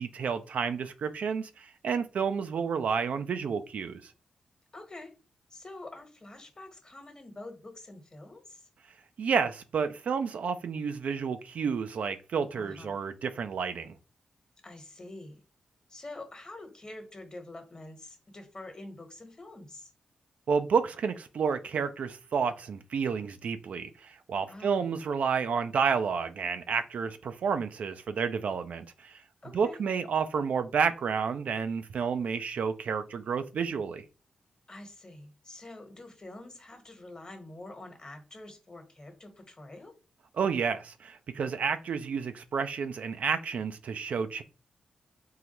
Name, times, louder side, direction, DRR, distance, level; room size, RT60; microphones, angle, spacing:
voice 1, 0.0-4.1 9.2-13.9 20.5-29.2 29.5-34.0 40.3-44.4, right 6 dB, 70° right, 0.3 m, -30 dB
voice 2, 4.7-5.1 5.5-8.7 12.5-13.0 14.6-15.4 15.9-19.9 24.5-24.8 29.4-29.8 34.7-39.9, left 2 dB, 35° left, 1.1 m, -46 dB
3.8 x 2.1 x 2.9 m
supercardioid pair, 40°, 3 cm